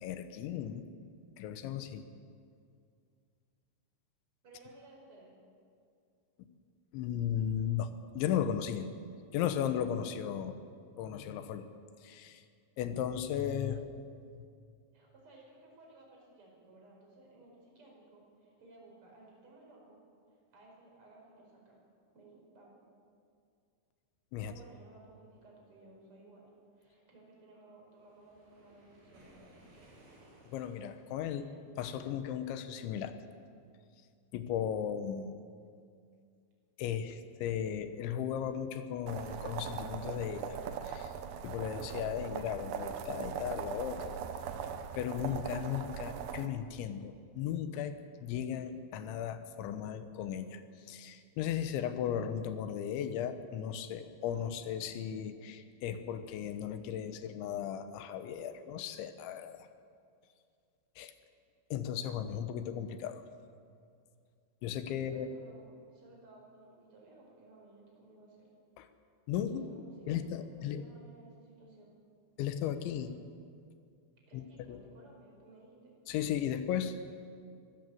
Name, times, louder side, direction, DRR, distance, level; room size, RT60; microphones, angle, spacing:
voice 1, 0.0-0.8 1.4-2.1 6.9-7.9 8.1-8.9 9.3-10.6 11.0-11.7 12.0-12.4 12.8-14.0 14.3-14.5 24.3-24.5 30.5-31.5 31.8-33.1 34.3-35.4 36.8-40.6 40.9-41.1 41.4-44.2 44.9-59.7 61.0-61.1 61.7-63.2 64.6-65.3 68.8-68.9 69.3-69.7 70.1-70.8 72.4-73.1 74.3-74.8 76.1-77.0, left 9 dB, 80° left, 10 dB, 3.4 m, -36 dB
voice 2, 4.4-5.4 14.9-20.0 20.5-21.8 22.1-22.8 24.4-26.4 26.8-29.6 31.3-31.5 65.0-68.5 69.5-70.2 70.5-71.9 74.3-76.0, right 2 dB, 30° right, -2 dB, 5.4 m, -57 dB
Waves surf, 28.0-31.3, right 1 dB, 55° right, 6.6 m, -61 dB
sound 1, 39.1-46.5, right 7 dB, 75° right, 2.0 m, -40 dB
24.0 x 14.0 x 7.8 m, 2.3 s
omnidirectional pair, 5.3 m